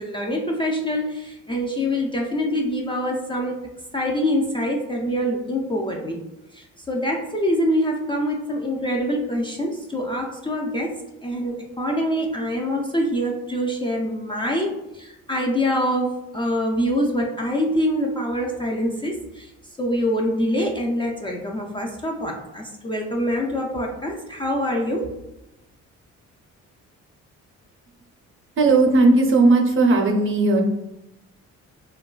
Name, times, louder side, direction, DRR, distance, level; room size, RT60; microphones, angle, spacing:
voice 1, 0.0-3.6 3.9-6.2 6.5-19.5 19.8-25.1, equal, 20° left, -1 dB, 0.3 m, -25 dB
voice 2, 28.6-30.6, right 3 dB, 45° right, 2 dB, 0.6 m, -16 dB
3.0 x 2.2 x 2.3 m, 0.94 s
cardioid pair, 90°, 30 cm